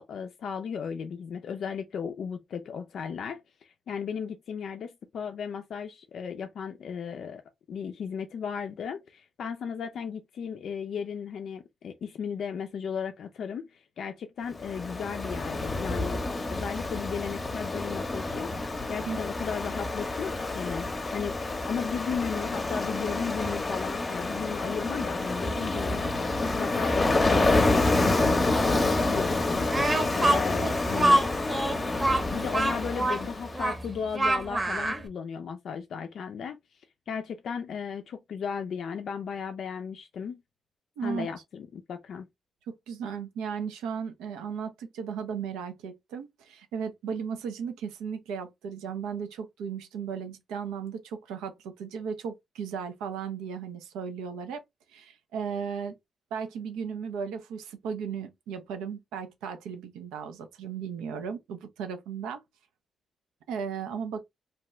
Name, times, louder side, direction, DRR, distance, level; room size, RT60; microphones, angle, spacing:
voice 1, 0.0-7.4 7.7-16.2 16.5-31.2 32.3-36.6 37.1-40.4 41.0-42.3, left 6 dB, 70° left, 0.3 m, -35 dB
Ocean, 14.6-33.7, left 2 dB, 35° left, 0.7 m, -28 dB
Speech, 29.7-35.0, right 1 dB, 30° right, 0.8 m, -26 dB
voice 2, 41.0-41.3 42.7-54.6 54.9-55.9 56.3-62.4 63.5-64.2, right 6 dB, 85° right, 0.5 m, -35 dB
2.7 x 2.2 x 3.0 m
hypercardioid pair, 40°, 0 cm